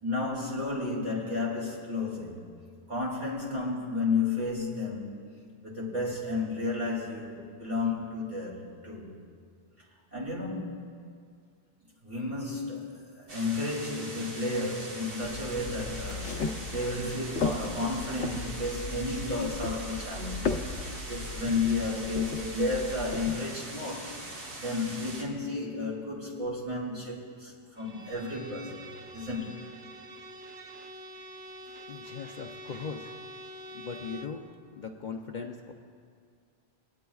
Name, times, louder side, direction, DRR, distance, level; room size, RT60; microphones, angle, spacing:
voice 1, 0.0-2.5 2.9-5.2 5.6-9.2 10.1-10.8 12.0-24.2 24.6-28.9 29.1-29.6, left 3 dB, 45° right, -5 dB, 2.7 m, -32 dB
sound 1, 13.3-25.2, right 2 dB, 90° right, 1.9 m, -42 dB
sound 2, 15.2-23.3, left 4 dB, 85° left, 1.0 m, -36 dB
Bowed string instrument, 27.8-34.4, right 1 dB, 65° right, 1.0 m, -46 dB
voice 2, 31.9-33.1 33.7-34.4 34.7-35.7, left 5 dB, 50° left, 2 dB, 0.7 m, -39 dB
24.5 x 9.6 x 2.3 m, 2.2 s
omnidirectional pair, 1.1 m